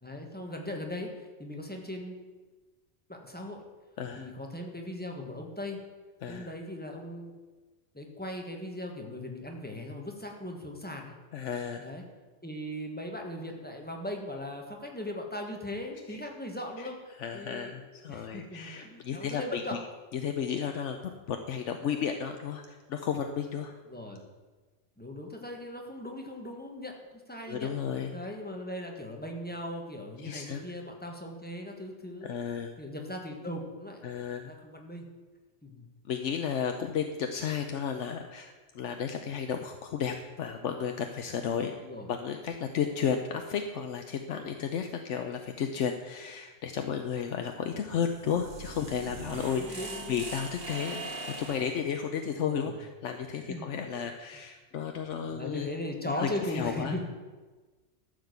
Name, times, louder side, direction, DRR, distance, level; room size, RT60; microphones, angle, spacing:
voice 1, 0.0-2.2 3.1-3.6 4.2-5.8 6.2-7.4 7.9-11.1 11.8-12.0 12.4-17.0 17.3-17.8 18.1-19.8 23.9-24.2 25.0-27.7 28.1-32.3 32.8-34.0 34.5-35.2 35.6-35.9 41.8-42.1 49.5-50.3 52.2-52.8 53.5-54.0 55.2-57.1, left 1 dB, 10° left, 1 dB, 1.5 m, -39 dB
voice 2, 4.0-4.3 6.2-6.5 11.3-11.8 16.1-16.2 16.8-16.9 17.2-19.8 20.1-23.7 27.5-28.1 30.2-30.6 32.2-32.7 34.0-34.5 36.0-41.7 42.1-55.7 56.0-57.1, left 7 dB, 80° left, 5 dB, 1.1 m, -33 dB
sound 1, 48.0-51.8, right 3 dB, 55° right, 1.4 m, -41 dB
13.0 x 5.1 x 8.0 m, 1.3 s
omnidirectional pair, 1.2 m